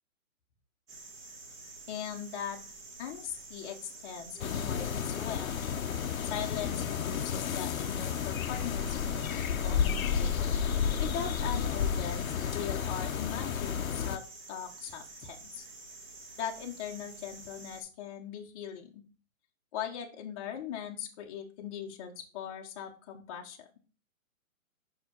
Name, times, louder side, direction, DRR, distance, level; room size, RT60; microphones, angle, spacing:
sound 1, 0.9-17.8, right 3 dB, 70° right, 2.5 m, -49 dB
voice 1, 1.9-2.6 3.0-3.8 4.0-5.5 6.2-10.4 11.0-15.6 16.4-19.0 19.7-23.7, left 8 dB, 25° left, 0 dB, 0.9 m, -40 dB
sound 2, 4.4-14.2, left 7 dB, 75° left, 0.8 m, -31 dB
5.7 x 5.0 x 5.3 m, 0.35 s
hypercardioid pair, 150°, 41 cm